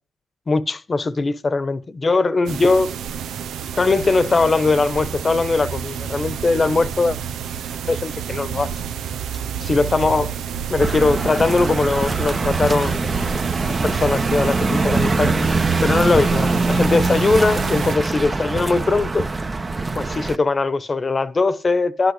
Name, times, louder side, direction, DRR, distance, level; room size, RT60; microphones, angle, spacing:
voice 1, 0.5-2.9 3.8-7.2 7.9-8.7 9.6-10.3 10.7-13.1 13.8-15.4 15.8-19.3 19.9-22.1, left 3 dB, 40° left, 1.1 m, -20 dB
sound 1, 2.5-18.0, right 8 dB, 90° right, 0.7 m, -29 dB
sound 2, 10.8-20.4, right 3 dB, 35° right, 1.2 m, -23 dB
11.0 x 8.3 x 8.3 m
cardioid pair, 55°, 0 cm